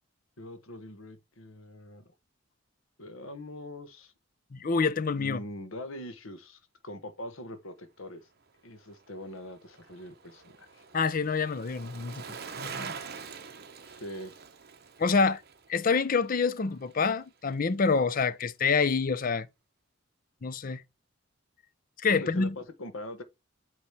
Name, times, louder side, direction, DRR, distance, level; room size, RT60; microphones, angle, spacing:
voice 1, 0.4-2.1 3.0-4.1 5.2-8.3 8.6-10.9 13.9-14.3 22.1-23.2, left 1 dB, 90° left, 1.2 m, -42 dB
voice 2, 4.5-5.4 10.9-12.2 12.6-12.9 15.0-15.4 15.7-19.5 20.4-20.8 22.0-22.5, left 4 dB, 45° left, 0.6 m, -27 dB
Bicycle, 8.8-17.2 17.5-17.6, right 6 dB, 50° right, 0.8 m, -45 dB
8.4 x 3.0 x 4.6 m
head